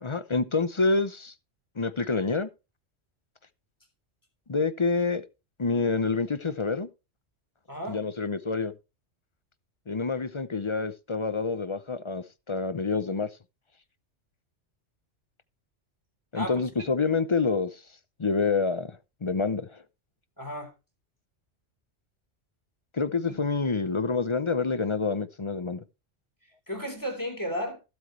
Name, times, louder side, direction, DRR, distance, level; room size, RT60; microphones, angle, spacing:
voice 1, 0.0-1.3 1.8-2.5 4.5-5.2 5.6-6.9 7.9-8.7 9.9-13.3 16.3-17.8 18.2-19.8 22.9-25.8, left 4 dB, 30° left, 0.6 m, -27 dB
voice 2, 7.7-8.0 16.3-16.9 20.4-20.7 23.3-23.4 26.7-27.8, equal, 15° left, 3.6 m, -34 dB
15.5 x 8.0 x 3.2 m
omnidirectional pair, 1.2 m